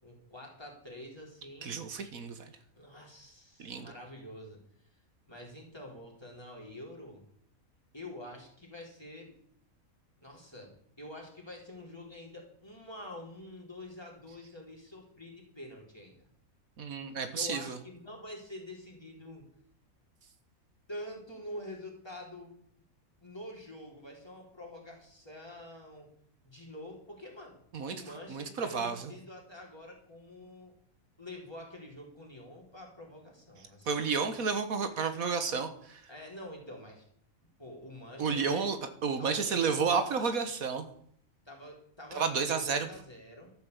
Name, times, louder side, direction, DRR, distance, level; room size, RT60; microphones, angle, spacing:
voice 1, 0.0-1.8 2.7-4.6 4.9-5.0 5.3-7.2 7.9-9.3 10.2-10.7 11.0-16.2 17.1-19.5 20.9-22.5 23.2-26.1 26.4-27.6 27.9-30.7 31.2-34.2 36.1-37.1 37.6-38.7 39.2-40.5 41.5-43.5, left 1 dB, 15° left, -1 dB, 4.0 m, -47 dB
voice 2, 1.6-2.4 3.6-3.9 16.8-17.8 27.7-27.9 28.3-29.1 33.9-36.0 38.2-38.8 39.0-40.9 42.1-42.9, right 5 dB, 75° right, 9 dB, 1.7 m, -31 dB
13.0 x 7.4 x 8.1 m, 0.64 s
omnidirectional pair, 1.5 m